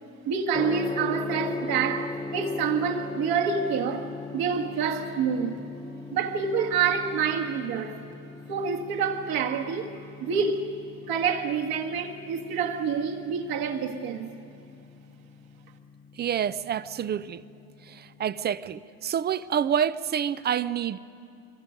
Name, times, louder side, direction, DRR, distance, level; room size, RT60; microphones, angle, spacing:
voice 1, 0.3-5.6 6.1-8.0 8.5-10.7 11.1-14.3, right 6 dB, 60° right, 2.1 m, -27 dB
Gong, 0.5-18.4, left 3 dB, 10° left, 0.7 m, -39 dB
voice 2, 16.2-17.4 17.9-21.0, right 9 dB, 25° right, 0.5 m, -28 dB
25.5 x 23.5 x 5.3 m
supercardioid pair, 115°, 40 cm